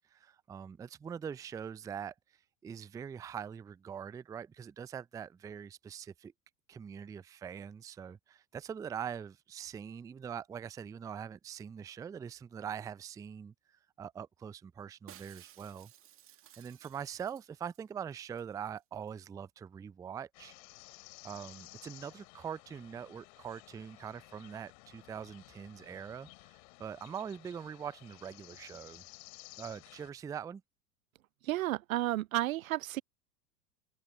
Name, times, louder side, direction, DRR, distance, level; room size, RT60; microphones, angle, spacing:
voice 1, 0.1-2.1 2.6-6.3 6.7-13.5 14.0-15.9 16.6-20.5 21.2-26.3 26.8-29.0 29.6-30.6, right 8 dB, 5° right, 0.5 m, -43 dB
Shatter, 15.1-17.8 18.1-18.2 18.4-18.8 19.1-19.2, right 12 dB, 25° right, 1.8 m, -57 dB
sound 1, 20.3-30.1, left 27 dB, 50° left, 3.5 m, -55 dB
voice 2, 31.4-33.0, right 15 dB, 55° right, 0.7 m, -32 dB
open air
figure-of-eight pair, 90°, 49 cm